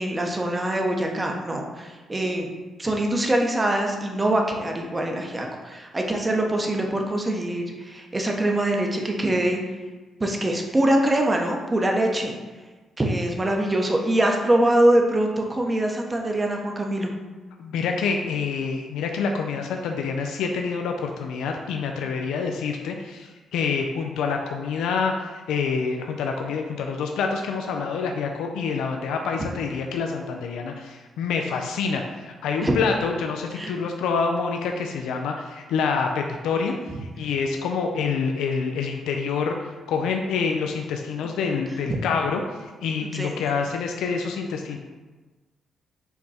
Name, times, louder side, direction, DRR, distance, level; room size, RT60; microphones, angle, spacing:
voice 1, 0.0-2.5 2.8-9.6 10.2-12.3 13.0-17.1 32.6-32.7 33.6-33.7 43.0-43.3, right 1 dB, 25° right, 1 dB, 0.8 m, -23 dB
voice 2, 17.6-36.7 37.2-42.4 42.8-44.8, left 5 dB, 85° left, 3 dB, 0.4 m, -27 dB
5.7 x 2.3 x 4.1 m, 1.3 s
supercardioid pair, 60°, 0 cm